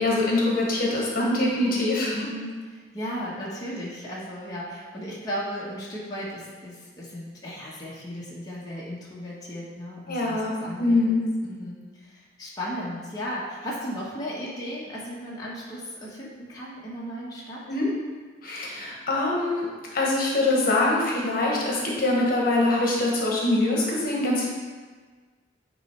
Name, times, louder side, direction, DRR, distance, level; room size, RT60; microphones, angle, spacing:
voice 1, 0.0-2.2 10.1-11.2 17.7-17.9 18.4-24.5, left 2 dB, 50° left, -3 dB, 1.2 m, -24 dB
voice 2, 2.1-11.0 11.4-17.6, equal, 20° left, -6 dB, 1.1 m, -36 dB
9.1 x 3.1 x 4.4 m, 1.5 s
head